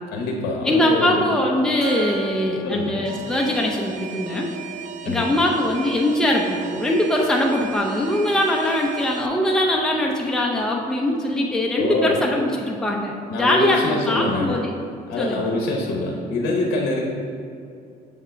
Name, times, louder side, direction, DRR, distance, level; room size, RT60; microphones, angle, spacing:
voice 1, 0.1-1.2 2.6-3.0 5.0-5.4 11.8-12.2 13.3-14.6 15.1-17.1, left 2 dB, 70° left, 0 dB, 0.9 m, -25 dB
voice 2, 0.6-4.5 5.0-14.7 15.2-15.5, left 1 dB, 5° left, -1 dB, 0.6 m, -22 dB
Gong, 1.8-5.1, right 6 dB, 90° right, 0.9 m, -39 dB
Alarm, 3.0-9.3, right 8 dB, 45° right, 0.4 m, -37 dB
6.9 x 3.6 x 5.6 m, 2.5 s
cardioid pair, 110°, 17 cm